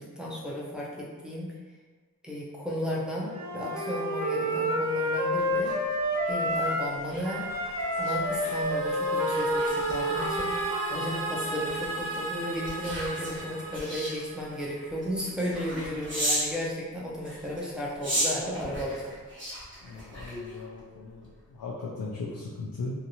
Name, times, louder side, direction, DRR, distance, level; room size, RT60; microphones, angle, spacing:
voice 1, 0.0-1.5 2.2-5.7 6.3-7.5 8.0-19.1, equal, ahead, -5 dB, 0.6 m, -34 dB
Wind instrument woodwind instrument, 3.3-7.0 7.2-11.2, equal, 55° right, 0.6 m, -29 dB
sound 1, 5.4-16.6 17.2-20.8 21.2-21.5, equal, 35° right, 1.1 m, -37 dB
sound 2, 7.5-14.6, right 3 dB, 90° right, 0.8 m, -36 dB
voice 2, 19.8-22.9, left 3 dB, 80° left, -4 dB, 0.5 m, -38 dB
2.8 x 2.5 x 2.8 m, 1.4 s
wide cardioid pair, 95°, 35 cm